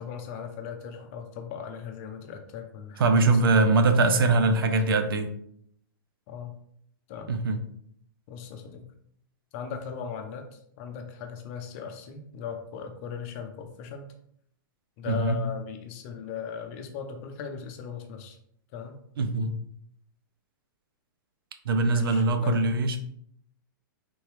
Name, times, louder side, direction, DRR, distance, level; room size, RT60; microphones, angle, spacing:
voice 1, 0.0-4.9 6.3-6.6 7.1-7.3 8.3-8.8 9.5-14.0 15.0-18.4 18.7-19.0 21.9-22.8, left 7 dB, 40° left, 5 dB, 0.6 m, -38 dB
voice 2, 3.0-5.3 7.3-7.6 15.1-15.4 19.2-19.5 21.6-23.0, right 3 dB, 85° right, 7 dB, 0.6 m, -22 dB
3.5 x 3.0 x 3.2 m, 0.68 s
hypercardioid pair, 150°, 12 cm